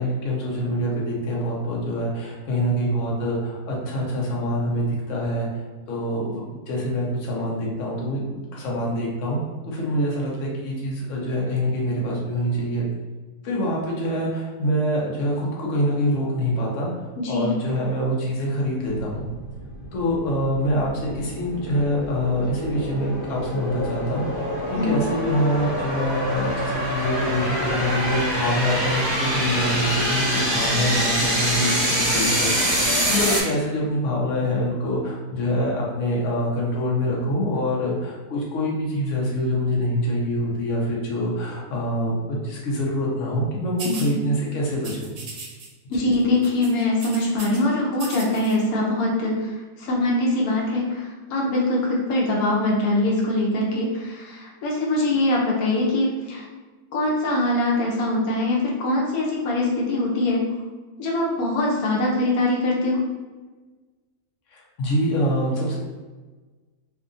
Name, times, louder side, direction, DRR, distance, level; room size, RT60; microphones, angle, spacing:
voice 1, 0.0-5.6 5.9-9.4 9.7-12.8 13.4-16.9 17.3-19.3 19.9-45.1 46.0-46.1 64.5-65.8, equal, 65° left, -3 dB, 1.0 m, -25 dB
voice 2, 17.2-17.5 24.7-25.0 43.9-44.0 45.9-49.5 49.8-56.4 56.9-60.4 61.0-63.0, left 2 dB, 85° left, -2 dB, 1.1 m, -23 dB
sound 1, 19.0-33.4, equal, 35° right, 0.4 m, -25 dB
sound 2, 43.8-44.1 44.8-45.7 45.9-46.2 46.4-47.6 47.9-48.6, right 4 dB, 70° right, 0.9 m, -37 dB
2.7 x 2.4 x 2.5 m, 1.3 s
omnidirectional pair, 1.5 m